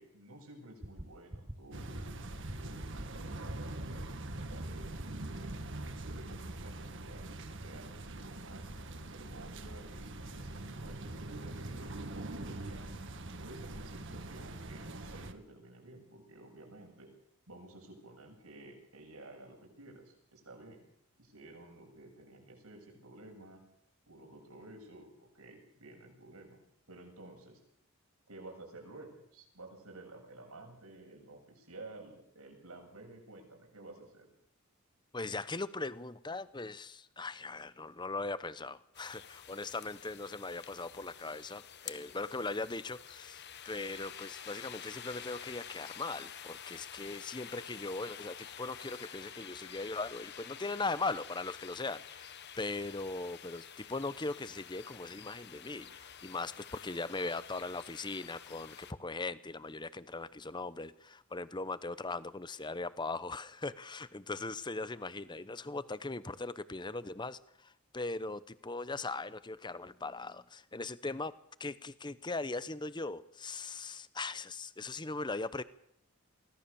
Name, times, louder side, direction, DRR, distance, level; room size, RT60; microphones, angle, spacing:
voice 1, 0.0-7.3 7.6-8.7 9.1-13.0 13.4-17.1 17.5-20.8 21.2-23.6 24.1-26.6 26.9-27.6 28.3-34.3, right 2 dB, 90° right, 1 dB, 7.7 m, -53 dB
sound 1, 0.8-1.0 1.3-1.5 1.8-2.0 2.3-2.5 2.8-3.0 3.3-3.5 3.8-4.0 4.3-4.5 4.8-5.0 5.3-5.5, right 1 dB, 20° right, 1.4 m, -42 dB
sound 2, 1.7-15.3, right 2 dB, 55° right, 1.8 m, -43 dB
voice 2, 35.1-71.3 71.6-75.6, left 3 dB, 20° left, 15 dB, 0.8 m, -39 dB
sound 3, 38.9-58.9, left 9 dB, 50° left, 1.3 m, -49 dB
24.0 x 17.0 x 7.0 m, 0.76 s
head